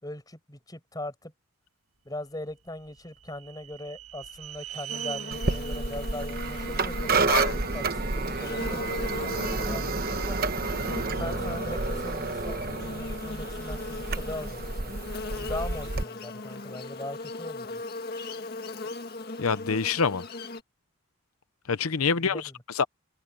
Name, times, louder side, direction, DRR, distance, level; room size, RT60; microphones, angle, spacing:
voice 1, 0.0-1.3 2.0-7.4 7.7-10.4 11.1-14.9 15.3-17.8 22.1-22.5, left 1 dB, 15° left, 5.6 m, -40 dB
sound 1, 2.5-7.7, right 12 dB, 90° right, 1.8 m, -42 dB
Buzz, 4.9-20.6, left 2 dB, 45° left, 1.8 m, -38 dB
sound 2, 5.3-16.0, right 3 dB, 45° right, 1.1 m, -30 dB
voice 2, 19.4-20.2 21.7-22.8, left 5 dB, 85° left, 0.7 m, -26 dB
head